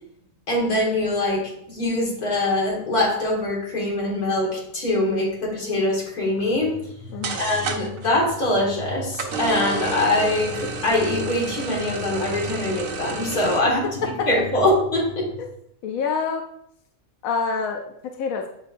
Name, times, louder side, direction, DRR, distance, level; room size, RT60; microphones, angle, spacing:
voice 1, 0.5-6.7 7.4-15.3, left 1 dB, 85° left, -3 dB, 2.5 m, -23 dB
sound 1, 6.4-15.4, left 3 dB, 50° left, 2.5 m, -39 dB
sound 2, 6.9-7.0 7.2-8.1 9.1-13.6, right 4 dB, 65° right, 1.2 m, -30 dB
voice 2, 7.1-7.6 14.2-14.3 15.4-15.5 15.8-16.4 17.2-18.5, left 5 dB, 70° left, 3 dB, 1.0 m, -27 dB
8.0 x 5.5 x 2.5 m, 0.73 s
omnidirectional pair, 1.6 m